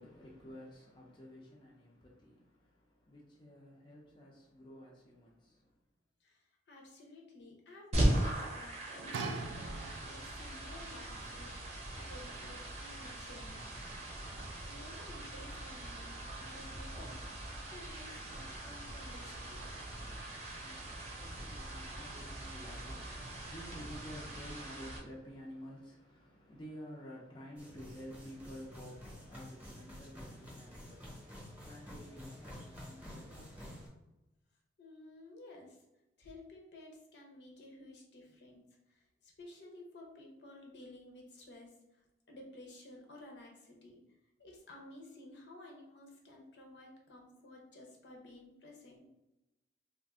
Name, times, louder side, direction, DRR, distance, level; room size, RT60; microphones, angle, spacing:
voice 1, 0.0-5.7 20.1-33.8, equal, 25° left, 0.5 m, -52 dB
voice 2, 6.2-13.7 14.6-17.3 17.6-19.9 34.8-35.8 36.2-44.0 44.4-49.1, left 2 dB, 65° left, 0.7 m, -54 dB
sound 1, 7.9-25.0, right 1 dB, 35° right, 0.7 m, -39 dB
sound 2, 9.1-10.4 11.2-11.3, right 4 dB, 85° right, 0.3 m, -41 dB
sound 3, 27.6-33.9, equal, 10° right, 0.8 m, -50 dB
2.5 x 2.5 x 3.5 m
head